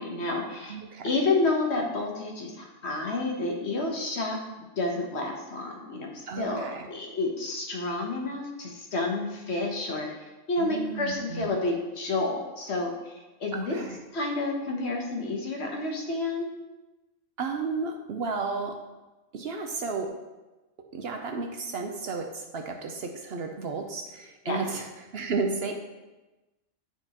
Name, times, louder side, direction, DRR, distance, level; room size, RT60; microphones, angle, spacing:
voice 1, 0.0-0.7 1.0-13.1 13.4-13.8 14.1-16.5 24.5-24.6, left 2 dB, 60° left, 0 dB, 1.3 m, -30 dB
voice 2, 0.7-1.1 6.3-6.9 10.6-11.5 13.5-14.0 17.4-18.8 19.3-20.1 20.9-25.7, right 4 dB, 60° right, 3 dB, 0.8 m, -33 dB
10.0 x 4.4 x 2.9 m, 1.1 s
omnidirectional pair, 1.3 m